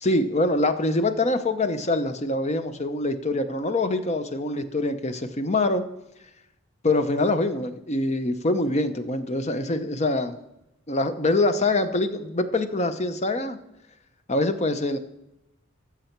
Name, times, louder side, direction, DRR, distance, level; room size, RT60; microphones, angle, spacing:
voice 1, 0.0-5.8 6.8-10.4 10.9-13.6 14.3-15.0, left 2 dB, 35° left, 9 dB, 0.7 m, -24 dB
13.5 x 7.0 x 4.5 m, 0.88 s
head